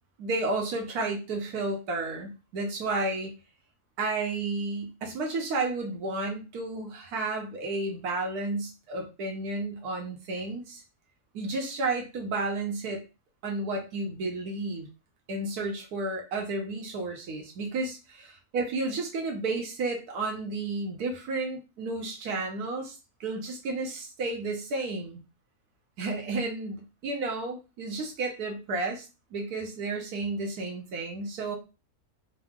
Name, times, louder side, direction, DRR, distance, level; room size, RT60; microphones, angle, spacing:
voice 1, 0.2-3.3 4.0-10.8 11.3-13.0 13.4-14.9 15.3-18.0 18.5-25.2 26.0-29.0 29.3-31.6, right 3 dB, 85° right, 1 dB, 1.3 m, -32 dB
4.5 x 2.0 x 3.6 m, 0.30 s
omnidirectional pair, 1.6 m